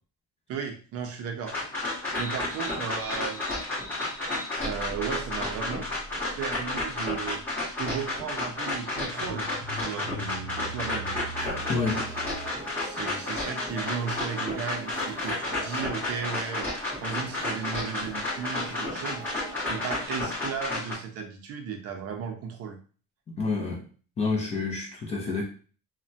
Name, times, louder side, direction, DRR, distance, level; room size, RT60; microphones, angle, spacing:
voice 1, 0.5-1.6 2.2-3.4 4.6-5.9 6.4-7.4 7.8-11.2 12.8-16.7 17.0-19.3 19.7-22.8, right 7 dB, 50° right, 0.5 m, -35 dB
sound 1, 1.5-21.0, left 2 dB, 5° left, 1.4 m, -32 dB
sound 2, 2.1-12.7, right 1 dB, 80° left, 0.8 m, -42 dB
sound 3, 11.3-20.1, right 2 dB, 25° right, 1.3 m, -43 dB
voice 2, 11.7-12.1 13.0-13.1 23.3-23.8 24.2-25.4, left 4 dB, 20° left, 0.4 m, -28 dB
3.2 x 2.1 x 2.6 m
cardioid pair, 170°, 32 cm